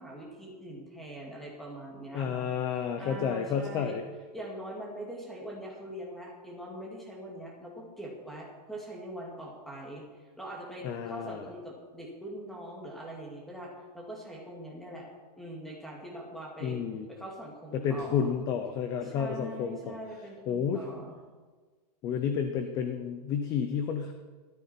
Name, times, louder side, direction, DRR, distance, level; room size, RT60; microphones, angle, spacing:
voice 1, 0.0-2.5 2.7-4.0 4.3-15.1 15.4-16.8 17.1-18.3 19.0-21.2, equal, ahead, -2 dB, 2.2 m, -42 dB
voice 2, 2.1-4.0 10.8-11.5 16.6-17.1 17.7-20.0 20.5-20.8 22.0-24.1, left 7 dB, 15° left, 7 dB, 0.6 m, -31 dB
15.0 x 13.0 x 4.4 m, 1.4 s
supercardioid pair, 175°, 21 cm